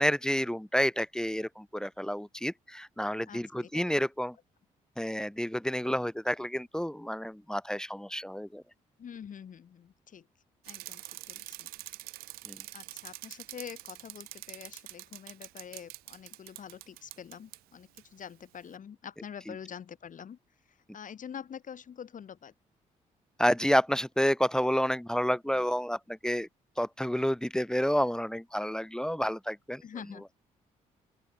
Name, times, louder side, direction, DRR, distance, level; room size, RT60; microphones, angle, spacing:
voice 1, 0.0-4.3 5.0-8.6 12.5-12.6 19.5-19.6 23.4-26.5 26.8-29.8, equal, 5° left, 1.2 m, -29 dB
voice 2, 3.3-3.8 9.0-10.3 10.7-11.7 12.7-20.4 20.7-22.5 29.8-30.2, left 8 dB, 60° left, 5.5 m, -46 dB
Bicycle, 10.6-17.6 18.0-18.1, right 19 dB, 90° right, 5.6 m, -45 dB
open air
supercardioid pair, 60°, 15 cm